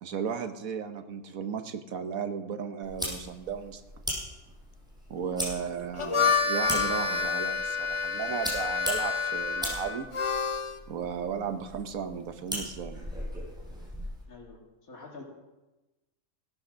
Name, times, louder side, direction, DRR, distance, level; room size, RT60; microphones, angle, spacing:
voice 1, 0.0-3.8 5.1-10.1 10.9-13.0, right 7 dB, 85° right, 7 dB, 1.5 m, -35 dB
sound 1, 2.8-14.2, equal, 5° right, 5.1 m, -39 dB
Harmonica, 5.8-10.8, left 5 dB, 45° left, 0.4 m, -28 dB
voice 2, 14.3-15.2, left 4 dB, 90° left, 0 dB, 2.7 m, -47 dB
17.0 x 9.5 x 6.4 m, 1.1 s
omnidirectional pair, 1.4 m